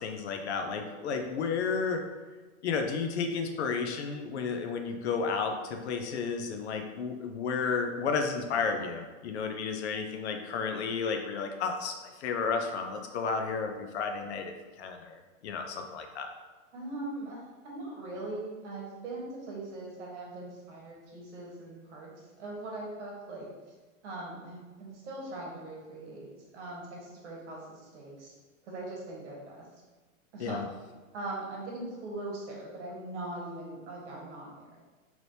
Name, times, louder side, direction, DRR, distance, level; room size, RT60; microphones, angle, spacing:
voice 1, 0.0-2.0 2.6-11.9 12.2-16.3 30.4-30.7, left 5 dB, 55° left, 5 dB, 0.5 m, -32 dB
voice 2, 16.7-22.1 22.4-23.5 24.0-28.3 28.6-29.7 30.3-30.7 31.1-34.6, right 2 dB, 60° right, -3 dB, 1.1 m, -41 dB
3.2 x 3.0 x 2.6 m, 1.3 s
supercardioid pair, 165°, 40 cm